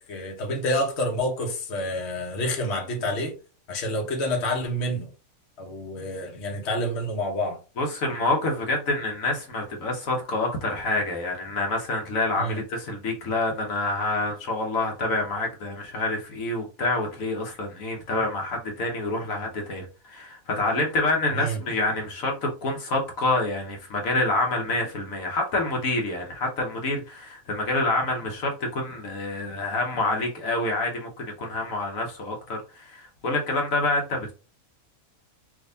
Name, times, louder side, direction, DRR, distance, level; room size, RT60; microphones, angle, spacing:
voice 1, 0.0-3.3 3.7-5.1 5.6-7.6 12.4-12.6 21.3-21.6, equal, 55° left, 1.1 m, -28 dB
voice 2, 7.8-34.3, left 2 dB, 70° left, 1.3 m, -27 dB
3.5 x 2.9 x 2.6 m
omnidirectional pair, 1.5 m